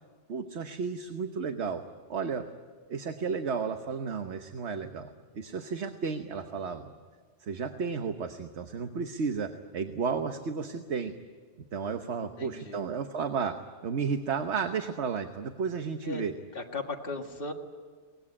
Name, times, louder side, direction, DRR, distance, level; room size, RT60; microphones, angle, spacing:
voice 1, 0.3-1.8 2.1-2.5 2.9-5.1 5.3-6.9 7.4-11.1 11.7-16.4, right 5 dB, 70° right, 6 dB, 1.3 m, -33 dB
voice 2, 12.2-12.8 16.0-16.2 16.5-17.5, left 3 dB, 50° left, 1 dB, 2.0 m, -37 dB
23.5 x 19.5 x 9.8 m, 1.5 s
omnidirectional pair, 1.2 m